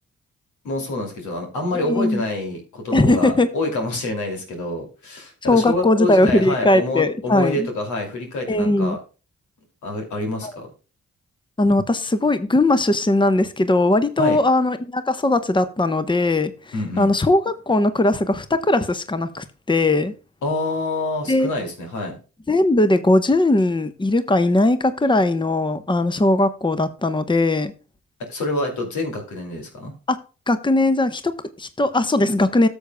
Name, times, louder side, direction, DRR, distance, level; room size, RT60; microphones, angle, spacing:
voice 1, 0.6-9.0 9.8-10.7 14.2-14.4 16.7-17.1 20.4-22.2 28.3-29.9, left 2 dB, 85° left, 2.6 m, -27 dB
voice 2, 1.8-2.3 2.9-3.5 5.5-7.7 8.5-9.0 10.4-10.5 11.6-20.1 21.3-21.5 22.5-27.7 30.1-30.2 30.5-32.7, left 2 dB, 15° left, 0.9 m, -19 dB
13.5 x 7.0 x 2.2 m
supercardioid pair, 45°, 29 cm